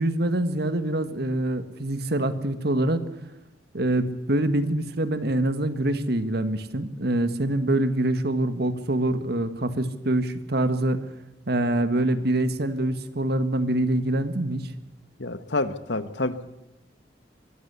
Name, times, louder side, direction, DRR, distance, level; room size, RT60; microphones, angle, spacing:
voice 1, 0.0-3.0 3.7-11.0 11.5-14.7, right 1 dB, 60° right, 10 dB, 1.7 m, -25 dB
voice 2, 15.2-16.4, left 2 dB, 75° left, 12 dB, 1.4 m, -28 dB
23.0 x 15.0 x 8.3 m, 0.96 s
head